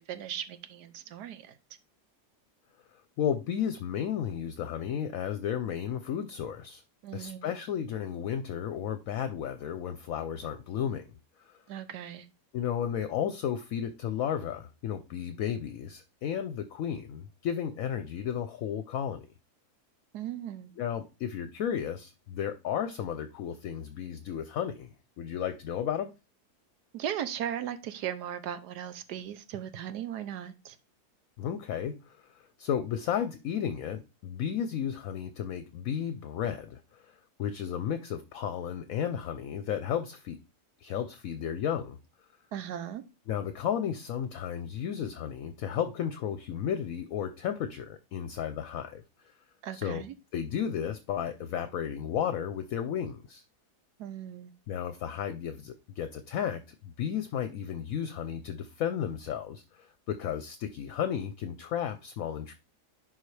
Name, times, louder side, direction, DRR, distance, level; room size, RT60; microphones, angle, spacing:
voice 1, 0.0-1.5 7.0-7.5 11.7-12.3 20.1-20.7 26.9-30.8 42.5-43.0 49.6-50.1 54.0-54.5, right 10 dB, 85° right, 1.3 m, -37 dB
voice 2, 3.2-6.8 7.1-11.0 11.4-11.5 12.5-19.3 20.8-24.9 25.2-26.1 31.4-32.2 32.6-36.8 37.1-40.4 40.8-42.0 43.3-49.0 49.7-50.0 50.3-53.4 54.7-62.5, left 9 dB, 65° left, 0.9 m, -33 dB
10.5 x 4.1 x 3.3 m
omnidirectional pair, 1.7 m